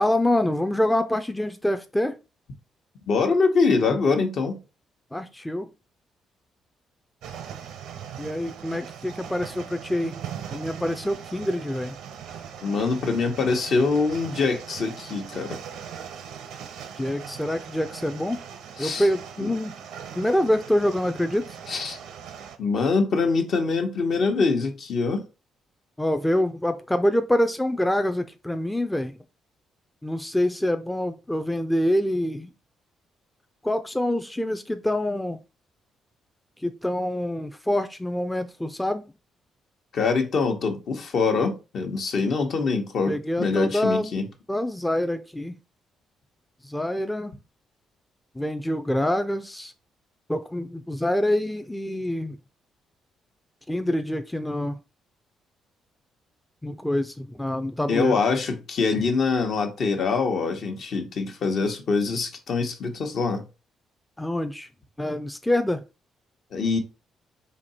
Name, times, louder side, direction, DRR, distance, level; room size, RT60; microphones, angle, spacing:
voice 1, 0.0-2.2 5.1-5.7 8.2-10.2 10.5-12.0 17.0-18.4 18.8-19.7 20.1-21.6 26.0-29.2 30.0-32.5 33.6-35.4 36.6-39.0 43.1-44.1 44.5-45.6 46.6-47.3 48.4-49.7 50.3-52.4 53.7-54.8 56.6-58.2 64.2-64.7 65.0-65.8, left 1 dB, 10° left, 0.4 m, -26 dB
voice 2, 3.1-4.6 12.6-15.6 18.8-19.1 19.4-19.5 21.7-22.0 22.6-25.2 39.9-44.3 57.9-63.4 66.5-66.8, left 4 dB, 60° left, 1.0 m, -24 dB
sound 1, 7.2-22.6, right 8 dB, 85° right, 0.7 m, -40 dB
4.3 x 2.8 x 4.1 m
cardioid pair, 90°, 0 cm